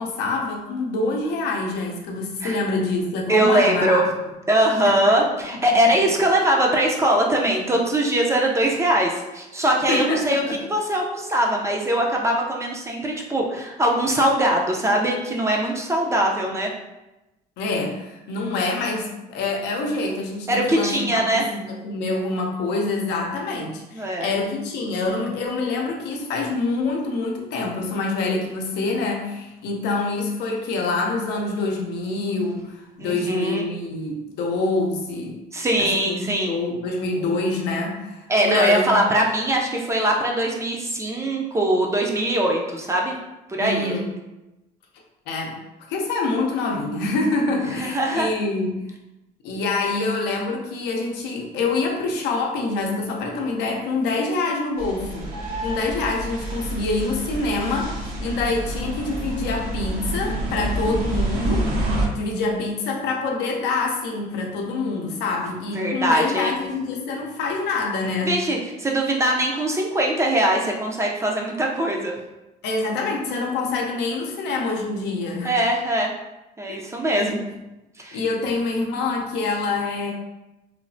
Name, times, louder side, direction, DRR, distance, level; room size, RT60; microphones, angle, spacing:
voice 1, 0.0-4.0 4.8-5.3 9.9-10.6 17.6-35.4 35.8-39.0 43.6-44.1 45.3-45.6 45.9-48.8 49.4-55.3 55.6-61.7 62.2-68.4 72.6-75.5 76.7-76.8 77.2-77.6 78.1-80.1, left 3 dB, 85° left, 0 dB, 0.6 m, -26 dB
voice 2, 3.3-4.0 4.5-10.4 10.7-16.7 20.5-21.4 23.9-24.3 33.0-33.7 35.5-36.5 38.3-43.1 43.5-43.9 47.8-48.3 65.7-66.6 68.3-72.1 75.4-76.1 76.6-77.4 78.0-78.2, right 1 dB, 15° right, 0 dB, 0.4 m, -21 dB
sound 1, 54.8-62.1, right 1 dB, 65° right, 0.7 m, -27 dB
3.1 x 2.0 x 2.5 m, 0.99 s
cardioid pair, 110°, 17 cm